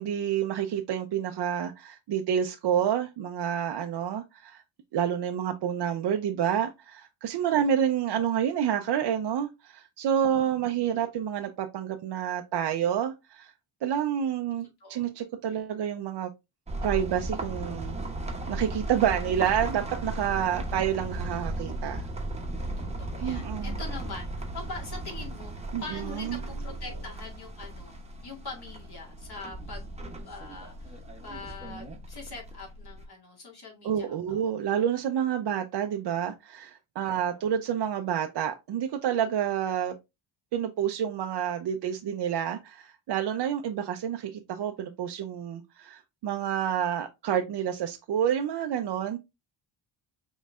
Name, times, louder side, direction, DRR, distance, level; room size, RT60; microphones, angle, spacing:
voice 1, 0.0-4.6 4.9-13.5 13.8-16.3 16.8-18.0 18.5-22.1 23.2-23.8 25.7-26.4 33.8-39.9 40.5-49.2, right 9 dB, 55° right, 0.6 m, -29 dB
voice 2, 10.4-10.9 14.8-15.1 22.8-25.5 25.8-28.0 28.2-29.9 30.2-34.5 37.2-37.5, left 3 dB, 50° left, 2.1 m, -43 dB
sound 1, 16.7-33.1, right 1 dB, 15° right, 0.9 m, -36 dB
5.4 x 3.1 x 2.4 m
cardioid pair, 105°, 50 cm